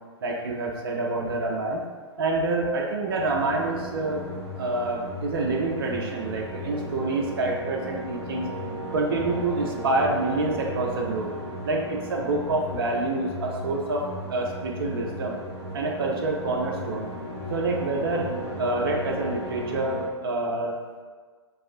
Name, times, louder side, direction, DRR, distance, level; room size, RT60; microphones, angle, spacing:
voice 1, 0.2-1.9 2.2-4.2 4.5-8.5 8.9-11.3 11.6-15.4 15.7-17.1 17.5-20.8, right 2 dB, 55° right, -1 dB, 0.4 m, -27 dB
sound 1, 3.2-20.1, equal, 55° left, 1.5 m, -35 dB
2.7 x 2.4 x 2.4 m, 1.5 s
figure-of-eight pair, 110°, 15 cm